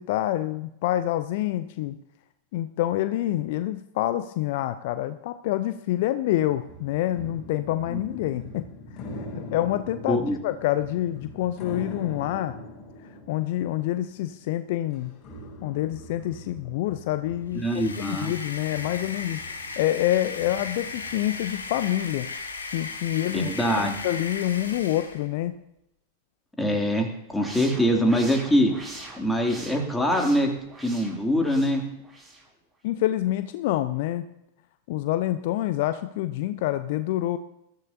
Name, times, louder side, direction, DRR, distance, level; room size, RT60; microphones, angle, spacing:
voice 1, 0.0-2.0 2.5-9.0 9.5-12.6 13.3-15.1 15.6-17.6 18.0-22.3 22.7-23.5 23.8-25.5 32.8-34.3 34.9-37.4, left 14 dB, 50° left, 12 dB, 0.6 m, -27 dB
sound 1, 6.5-14.6 14.9-21.6, left 1 dB, 30° left, 6.9 m, -43 dB
voice 2, 10.1-10.4 17.5-18.3 23.3-24.0 26.6-28.7 29.2-30.5 30.8-31.8, equal, 5° left, 1 dB, 2.6 m, -23 dB
sound 2, 17.5-25.3, left 4 dB, 75° left, 2.3 m, -36 dB
sound 3, 27.3-32.5, right 2 dB, 15° right, 4.5 m, -43 dB
21.0 x 14.0 x 2.7 m, 0.83 s
figure-of-eight pair, 90°, 0 cm